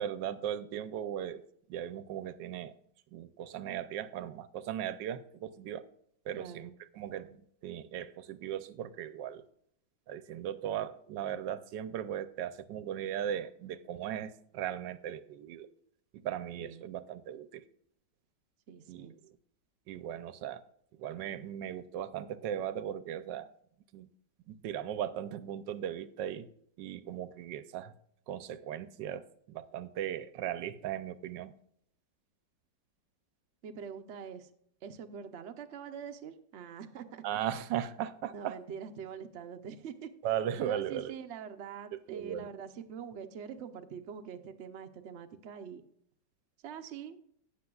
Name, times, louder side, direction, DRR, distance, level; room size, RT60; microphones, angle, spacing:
voice 1, 0.0-1.4 1.7-2.8 3.1-5.9 6.3-9.4 10.1-15.7 16.1-17.6 18.9-19.4 19.9-20.6 21.0-23.5 23.9-24.1 24.5-26.5 26.8-27.9 28.3-31.5 37.2-38.6 40.2-41.1 42.1-42.5, right 10 dB, 80° right, 14 dB, 1.2 m, -37 dB
voice 2, 6.3-6.7 16.6-16.8 18.7-19.1 33.6-34.5 34.8-37.2 38.3-40.1 40.6-45.9 46.6-47.2, right 7 dB, 60° right, 6 dB, 0.7 m, -44 dB
17.0 x 6.8 x 2.3 m, 0.69 s
omnidirectional pair, 2.0 m